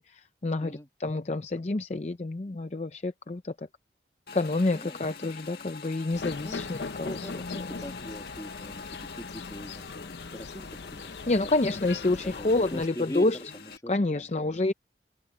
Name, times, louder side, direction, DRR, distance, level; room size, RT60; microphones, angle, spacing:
voice 1, 0.0-0.7 1.0-3.7 4.3-7.1 11.3-13.4 13.9-14.7, left 2 dB, 40° left, 0.6 m, -28 dB
voice 2, 0.6-0.9 4.7-5.0 6.4-11.3 12.0-13.3 13.5-14.5, equal, 20° left, 1.9 m, -42 dB
Motorcycle / Engine, 4.3-13.8, left 5 dB, 60° left, 1.7 m, -45 dB
sound 1, 6.1-12.9, left 4 dB, 75° left, 0.8 m, -40 dB
open air
head